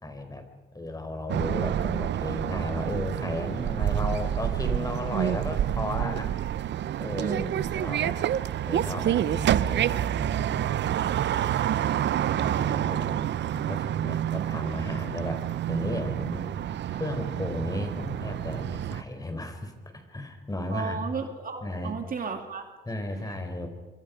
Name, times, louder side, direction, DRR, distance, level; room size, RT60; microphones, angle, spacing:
voice 1, 0.0-0.4 0.7-6.3 7.0-8.2 8.7-11.0 12.3-15.4 15.7-21.0 21.6-21.9 22.9-23.7, left 1 dB, 20° left, 6 dB, 4.3 m, -35 dB
sound 1, 1.3-19.0, right 11 dB, 65° right, 0.7 m, -28 dB
voice 2, 7.2-7.6 20.7-22.7 23.3-23.4, right 5 dB, 45° right, 5 dB, 2.5 m, -34 dB
25.5 x 25.0 x 5.2 m, 1.3 s
cardioid pair, 90°, 20 cm